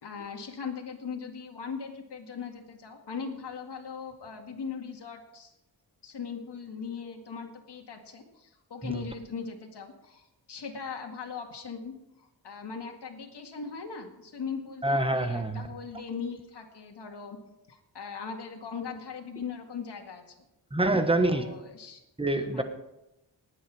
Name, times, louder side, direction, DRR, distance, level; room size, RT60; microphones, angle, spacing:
voice 1, 0.0-5.5 6.0-11.9 12.2-17.4 17.7-20.3 21.2-22.0 22.5-22.6, left 6 dB, 75° left, 2.0 m, -39 dB
voice 2, 14.8-15.7 20.7-21.4 22.2-22.6, right 2 dB, 15° right, 1.2 m, -26 dB
19.5 x 8.1 x 4.8 m
wide cardioid pair, 135°, 42 cm